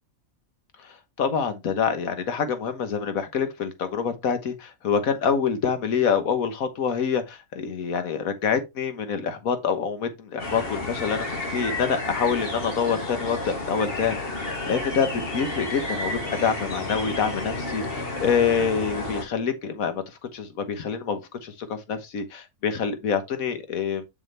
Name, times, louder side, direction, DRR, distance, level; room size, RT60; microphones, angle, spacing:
voice 1, 0.8-11.2 11.5-20.0 20.3-24.1, left 6 dB, 75° left, 1.6 m, -26 dB
sound 1, 10.4-19.2, left 2 dB, 40° left, 2.2 m, -31 dB
7.2 x 6.3 x 3.4 m
omnidirectional pair, 1.5 m